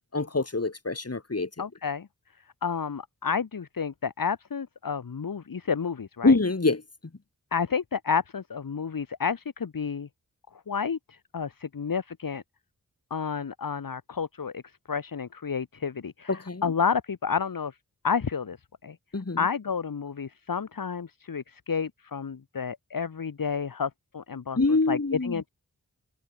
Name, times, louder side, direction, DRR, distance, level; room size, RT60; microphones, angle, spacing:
voice 1, 0.1-1.5 6.2-6.8 16.3-16.6 19.1-19.4 24.6-25.4, left 3 dB, 45° left, 4.8 m, -25 dB
voice 2, 1.6-2.1 2.6-6.4 7.5-10.1 10.7-12.4 13.1-14.6 14.9-17.7 18.0-18.6 18.8-18.9 19.4-24.6 24.9-25.5, left 6 dB, 70° left, 1.7 m, -30 dB
cardioid pair, 50°, 35 cm